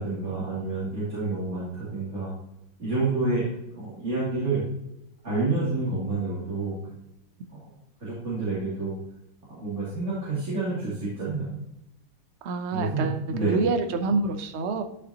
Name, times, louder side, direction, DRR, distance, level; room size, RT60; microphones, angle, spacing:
voice 1, 0.0-2.3 2.8-3.5 3.8-4.6 5.2-6.8 7.5-7.6 8.0-8.9 9.6-11.5 12.7-13.7, right 3 dB, 35° right, -10 dB, 3.0 m, -28 dB
voice 2, 12.4-14.8, right 3 dB, 70° right, 6 dB, 0.6 m, -27 dB
12.5 x 5.5 x 2.9 m, 0.83 s
omnidirectional pair, 2.3 m